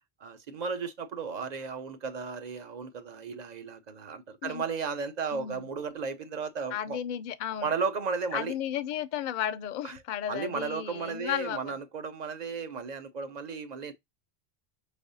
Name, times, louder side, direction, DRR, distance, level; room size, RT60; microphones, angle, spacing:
voice 1, 0.2-7.0 7.6-8.6 9.8-10.0 10.3-13.9, right 5 dB, 45° right, 0.7 m, -34 dB
voice 2, 5.3-5.7 6.7-7.7 8.3-11.8, left 10 dB, 55° left, 0.5 m, -34 dB
5.4 x 3.3 x 2.6 m
omnidirectional pair, 1.1 m